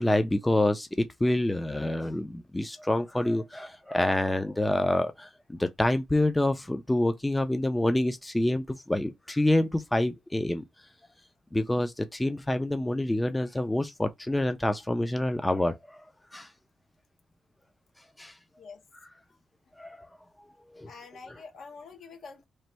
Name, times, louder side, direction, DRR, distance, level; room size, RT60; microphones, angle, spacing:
voice 1, 0.0-10.6 11.5-16.0 16.3-16.5 18.2-18.3 19.8-20.1 20.7-20.9, left 1 dB, 10° left, 0.4 m, -27 dB
voice 2, 20.9-22.4, left 4 dB, 70° left, 1.2 m, -46 dB
3.1 x 2.6 x 4.3 m
wide cardioid pair, 135°, 0 cm